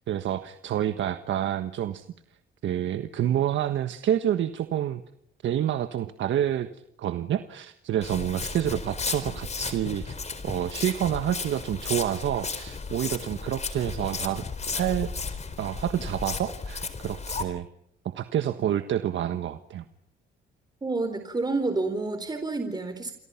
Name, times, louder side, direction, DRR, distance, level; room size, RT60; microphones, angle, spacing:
voice 1, 0.1-2.0 2.6-5.0 5.4-6.7 7.0-10.2 10.4-14.4 14.7-15.1 15.6-17.7 18.0-19.8, right 10 dB, 70° right, 9 dB, 1.5 m, -28 dB
Walk footsteps, 8.0-17.4, left 4 dB, 35° left, 4.2 m, -34 dB
voice 2, 20.8-23.2, right 3 dB, 20° right, 7 dB, 4.2 m, -29 dB
29.0 x 25.5 x 5.9 m, 0.73 s
cardioid pair, 90°, 20 cm